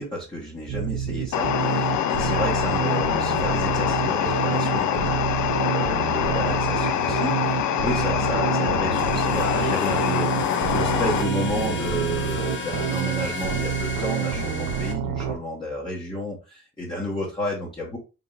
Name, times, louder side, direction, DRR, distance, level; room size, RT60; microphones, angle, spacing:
voice 1, 0.0-18.0, equal, 15° left, -5 dB, 1.5 m, -31 dB
sound 1, 0.7-15.3, right 9 dB, 75° right, 0.8 m, -28 dB
sound 2, 1.3-11.2, left 10 dB, 75° left, 0.5 m, -24 dB
sound 3, 9.0-14.9, left 4 dB, 40° left, 0.9 m, -33 dB
3.8 x 3.6 x 2.6 m, 0.30 s
cardioid pair, 90°, 30 cm